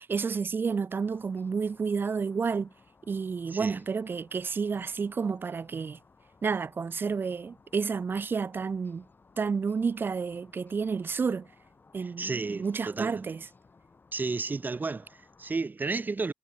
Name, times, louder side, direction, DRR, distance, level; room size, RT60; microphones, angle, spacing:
voice 1, 0.0-2.7 3.1-6.0 6.4-9.0 9.4-11.5 11.9-13.4, right 5 dB, 80° right, 0.4 m, -30 dB
sound 1, 1.0-15.6, left 4 dB, 70° left, 3.6 m, -60 dB
voice 2, 3.5-3.8 12.0-13.3 14.1-16.3, right 3 dB, 60° right, 0.9 m, -32 dB
cardioid pair, 45°, 4 cm